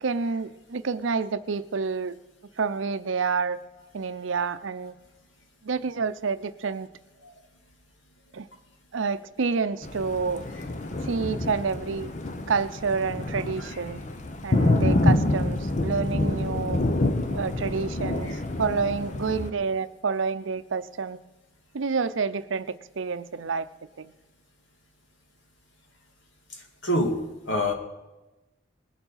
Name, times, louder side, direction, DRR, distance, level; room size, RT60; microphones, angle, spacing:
voice 1, 0.0-2.1 2.6-3.6 3.9-4.9 5.6-6.9 8.3-8.5 8.9-10.4 11.0-12.1 12.5-14.0 14.4-16.8 17.3-18.3 18.6-21.2 21.7-22.7 23.0-23.7 24.0-24.1, right 5 dB, 80° right, 13 dB, 0.6 m, -28 dB
Thunder, 9.8-19.5, left 2 dB, 40° left, 0.8 m, -27 dB
voice 2, 26.8-27.2 27.5-27.7, left 1 dB, 75° left, 3 dB, 2.1 m, -26 dB
20.0 x 7.1 x 5.6 m, 1.0 s
head